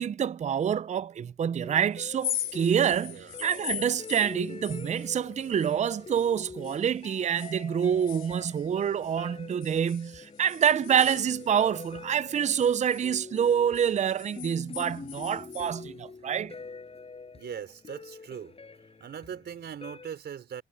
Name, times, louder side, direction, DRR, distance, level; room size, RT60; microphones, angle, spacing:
voice 1, 0.0-16.5, right 8 dB, 35° right, 0.5 m, -27 dB
sound 1, 1.6-20.1, left 4 dB, 30° left, 6.8 m, -45 dB
sound 2, 2.2-6.3 6.6-9.2 9.6-11.9 12.3-15.8, left 10 dB, 70° left, 3.7 m, -40 dB
voice 2, 3.1-3.4 17.3-18.5 19.0-20.6, right 8 dB, 60° right, 5.0 m, -40 dB
cardioid pair, 90°, 20 cm